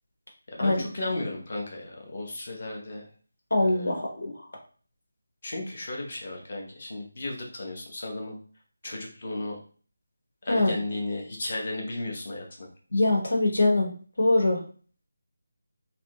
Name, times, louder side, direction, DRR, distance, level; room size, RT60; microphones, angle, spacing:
voice 1, 0.5-3.1 3.6-3.9 5.4-8.3 8.8-9.6 10.4-12.7, left 2 dB, 30° left, 0 dB, 0.8 m, -34 dB
voice 2, 3.5-4.3 10.5-10.7 12.9-13.9 14.2-14.6, left 2 dB, 75° left, -2 dB, 1.4 m, -23 dB
3.3 x 2.5 x 3.0 m, 0.42 s
figure-of-eight pair, 180°, 0 cm